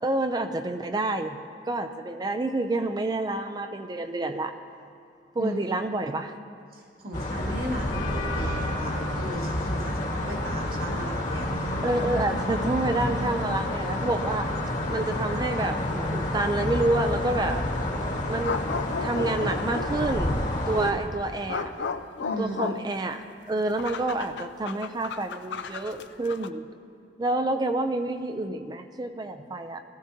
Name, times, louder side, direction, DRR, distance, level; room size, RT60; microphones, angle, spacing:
voice 1, 0.0-4.5 5.4-6.3 9.9-10.0 11.8-14.5 14.9-17.7 18.3-18.5 19.0-20.4 20.7-21.7 22.4-26.6 27.2-29.8, right 2 dB, 25° right, 8 dB, 0.4 m, -28 dB
voice 2, 6.7-11.7 22.2-22.6, equal, 55° right, -3 dB, 1.9 m, -36 dB
sound 1, 7.1-20.9, left 1 dB, 45° left, 1.4 m, -29 dB
sound 2, 13.5-13.6 14.6-14.7 18.4-20.0 20.7-26.5, left 5 dB, 75° left, 0.5 m, -35 dB
19.0 x 14.5 x 2.8 m, 2.4 s
head